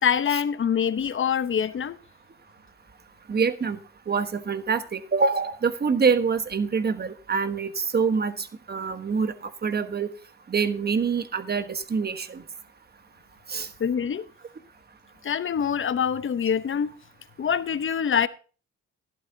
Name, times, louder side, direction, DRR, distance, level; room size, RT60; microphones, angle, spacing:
voice 1, 0.0-2.0 13.8-14.2 15.2-16.9 17.4-18.3, left 7 dB, 40° left, 0.9 m, -25 dB
voice 2, 3.3-3.8 4.1-10.1 10.5-12.4 13.5-13.7, right 5 dB, 35° right, 1.2 m, -25 dB
13.0 x 11.5 x 2.8 m
cardioid pair, 90°, 30 cm